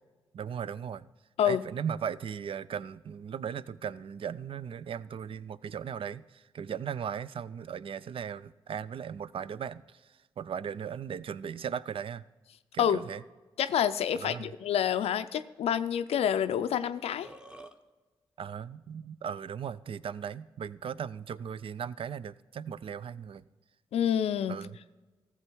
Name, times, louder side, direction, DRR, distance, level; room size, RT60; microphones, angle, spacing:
voice 1, 0.3-1.1 1.4-12.2 12.7-13.2 14.1-14.5 18.4-23.5 24.5-24.8, right 8 dB, 65° right, 0.4 m, -37 dB
voice 2, 13.6-17.3 23.9-24.6, left 9 dB, 85° left, 0.4 m, -28 dB
Burping eructation, 16.9-17.8, right 1 dB, 10° right, 0.9 m, -48 dB
14.0 x 7.1 x 4.5 m
supercardioid pair, 50°, 10 cm